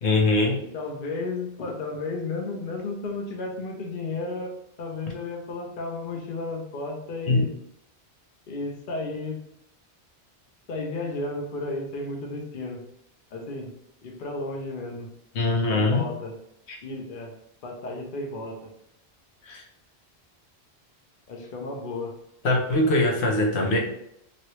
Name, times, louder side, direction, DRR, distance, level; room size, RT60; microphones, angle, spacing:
voice 1, 0.0-0.6 7.3-7.4 15.3-16.1 16.7-16.8 19.5-19.6 22.4-23.8, left 2 dB, 80° left, 1 dB, 1.0 m, -22 dB
voice 2, 0.7-4.5 4.8-7.5 8.5-9.4 10.7-12.8 13.3-13.7 14.0-15.1 15.7-16.4 16.8-17.3 17.6-18.6 21.3-22.2, left 3 dB, 55° left, 0 dB, 0.8 m, -33 dB
3.0 x 2.8 x 3.0 m, 0.77 s
omnidirectional pair, 1.1 m